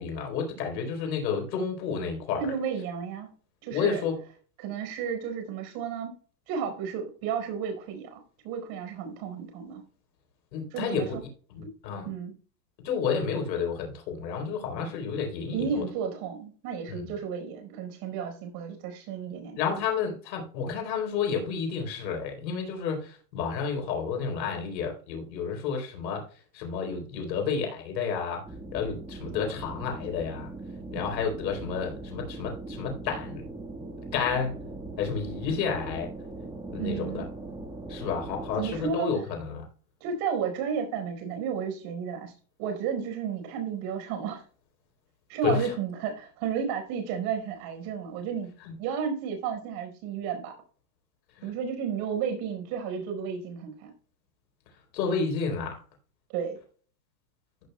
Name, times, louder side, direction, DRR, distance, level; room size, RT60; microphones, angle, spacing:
voice 1, 0.0-2.5 3.7-4.2 10.5-11.2 11.5-12.1 12.8-15.8 16.9-17.1 19.6-26.2 26.5-28.4 28.7-30.5 30.9-33.4 34.1-34.6 35.0-36.1 36.7-37.3 37.9-39.7 45.4-45.7 48.6-48.8 51.4-51.5 54.9-55.8, left 6 dB, 85° left, 2 dB, 3.9 m, -30 dB
voice 2, 2.4-3.3 3.6-4.0 4.6-6.1 6.5-9.8 10.7-11.2 12.0-12.3 15.5-19.6 36.8-37.3 38.5-39.1 40.0-42.3 42.6-44.4 45.3-48.5 48.8-50.5 51.4-53.9 56.3-56.6, right 7 dB, 50° right, 5 dB, 4.8 m, -32 dB
sound 1, 28.4-38.9, right 2 dB, 5° right, 1.6 m, -40 dB
15.0 x 8.2 x 2.3 m, 0.40 s
supercardioid pair, 140°, 49 cm